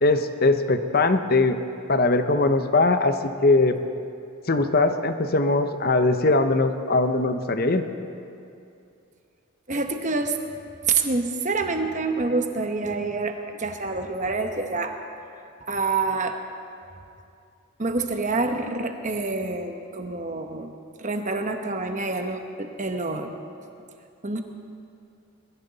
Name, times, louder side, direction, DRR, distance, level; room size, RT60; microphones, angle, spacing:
voice 1, 0.0-1.6 1.9-3.8 4.5-7.8, left 2 dB, 45° left, 8 dB, 0.8 m, -21 dB
voice 2, 9.7-10.4 10.9-15.0 15.7-16.4 17.8-20.7 21.0-23.3 24.2-24.4, right 3 dB, 35° right, 5 dB, 1.0 m, -27 dB
22.0 x 15.0 x 4.1 m, 2.5 s
head